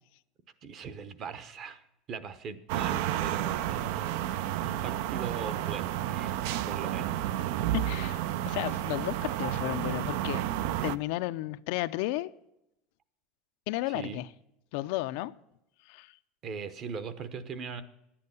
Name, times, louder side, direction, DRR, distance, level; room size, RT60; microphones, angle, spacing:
voice 1, 0.6-1.8 2.1-4.2 4.6-6.4 6.6-7.1 13.9-14.2 16.4-17.8, right 6 dB, 35° right, 13 dB, 0.8 m, -40 dB
sound 1, 2.7-11.0, right 12 dB, 70° right, 0.5 m, -31 dB
voice 2, 7.7-10.4 10.8-12.3 13.7-14.3 14.7-15.3 15.9-16.1, left 17 dB, 65° left, 12 dB, 0.5 m, -33 dB
11.0 x 8.6 x 6.9 m, 0.84 s
cardioid pair, 165°, 0 cm